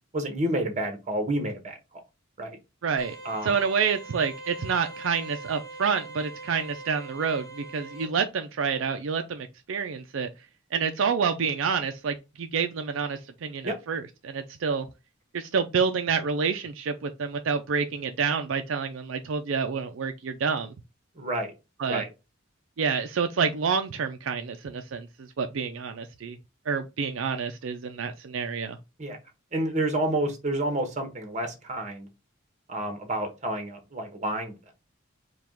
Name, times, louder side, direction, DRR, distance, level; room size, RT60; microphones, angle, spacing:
voice 1, 0.1-1.8 2.4-2.6 3.2-3.6 13.6-13.8 21.2-21.5 21.8-22.1 29.0-29.2 29.5-32.1 32.7-34.5, right 1 dB, 35° right, 1.2 m, -29 dB
voice 2, 2.8-3.2 3.4-10.3 10.7-14.9 15.3-20.7 21.8-22.0 22.8-25.1 25.4-26.4 26.7-28.8, right 6 dB, 70° right, 0.4 m, -28 dB
sound 1, 3.0-8.0, right 2 dB, 15° left, 1.5 m, -42 dB
4.7 x 2.3 x 3.6 m
head